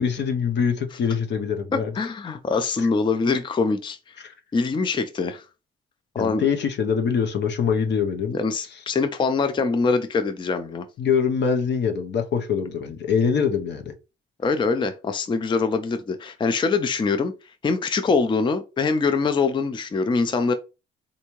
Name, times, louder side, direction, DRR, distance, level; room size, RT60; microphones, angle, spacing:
voice 1, 0.0-1.9 2.8-2.9 4.2-4.3 6.2-8.4 8.7-8.8 11.0-13.9, left 6 dB, 60° left, 0.7 m, -24 dB
voice 2, 2.0-4.2 4.5-5.4 6.1-6.4 8.3-10.9 14.4-17.3 17.6-20.5, left 4 dB, 25° left, 0.4 m, -23 dB
3.5 x 2.6 x 3.0 m
cardioid pair, 90°, 20 cm